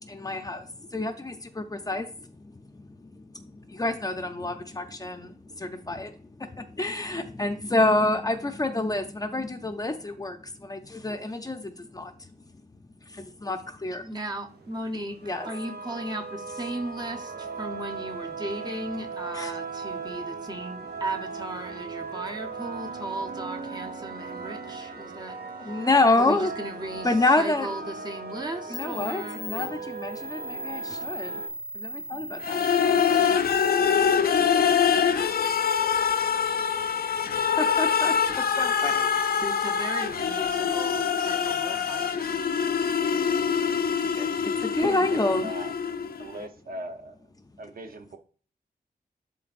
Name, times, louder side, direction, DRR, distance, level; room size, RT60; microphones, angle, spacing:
voice 1, 0.0-12.3 13.0-14.1 15.2-15.5 19.3-19.5 25.6-26.5 27.0-27.7 28.7-31.3 31.7-32.6 37.6-39.4 44.1-45.5, left 2 dB, 20° left, 6 dB, 0.6 m, -28 dB
voice 2, 14.0-25.9 26.1-27.1 27.4-29.8 39.4-42.7, right 1 dB, 25° right, 4 dB, 1.0 m, -36 dB
sound 1, 14.5-31.5, right 4 dB, 90° right, 1.0 m, -38 dB
sound 2, 28.3-28.4 28.7-33.7, equal, 45° right, 1.4 m, -38 dB
sound 3, 32.4-46.3, left 7 dB, 70° left, 0.5 m, -24 dB
voice 3, 44.8-45.7 46.2-47.2 47.6-48.2, right 2 dB, 65° right, 6 dB, 0.9 m, -38 dB
11.5 x 3.9 x 2.5 m, 0.41 s
wide cardioid pair, 170°, 16 cm